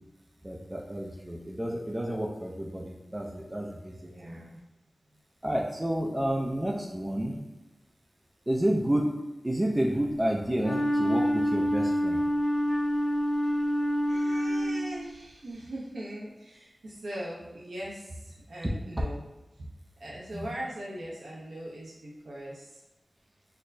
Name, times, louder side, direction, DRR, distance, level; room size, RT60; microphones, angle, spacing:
voice 1, 0.4-3.9 4.2-4.4 5.4-7.4 8.5-9.1 9.4-12.2 20.3-20.4, right 1 dB, 20° right, -1 dB, 0.4 m, -30 dB
voice 2, 4.0-4.6 14.1-19.2 19.6-19.7 20.0-22.7, right 1 dB, 90° right, -5 dB, 0.6 m, -40 dB
Wind instrument woodwind instrument, 10.6-15.1, equal, 30° left, 0.7 m, -27 dB
4.4 x 2.1 x 2.6 m, 1.1 s
wide cardioid pair, 65°, 0 cm